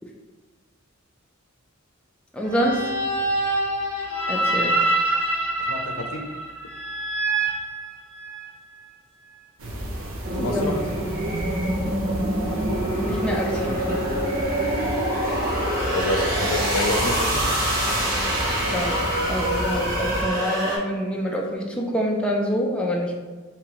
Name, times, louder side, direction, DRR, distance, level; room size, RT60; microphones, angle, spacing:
voice 1, 2.3-2.8 4.3-4.8 10.4-10.6 11.8-12.0 12.9-14.0 18.7-19.0 19.3-23.2, equal, 5° left, -2 dB, 0.4 m, -26 dB
sound 1, 2.4-8.5, right 2 dB, 10° right, 1.2 m, -25 dB
voice 2, 5.7-6.3 10.4-10.8 15.9-17.5, left 2 dB, 75° left, 3 dB, 0.5 m, -27 dB
sound 2, 9.6-20.2, right 1 dB, 70° right, 0.7 m, -32 dB
sound 3, 10.2-20.8, right 1 dB, 45° right, 0.9 m, -25 dB
3.5 x 2.9 x 3.0 m, 1.3 s
head